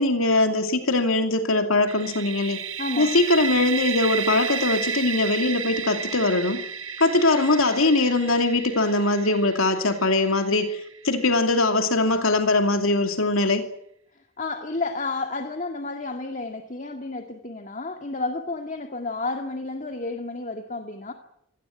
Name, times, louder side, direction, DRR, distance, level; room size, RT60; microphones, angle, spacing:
voice 1, 0.0-2.6 3.0-6.6 7.0-13.7, left 2 dB, 80° left, 2.6 m, -21 dB
sound 1, 1.9-11.6, right 6 dB, 70° right, 1.6 m, -32 dB
voice 2, 2.8-3.1 14.4-21.1, left 3 dB, 35° left, 2.0 m, -31 dB
25.5 x 18.5 x 9.3 m
head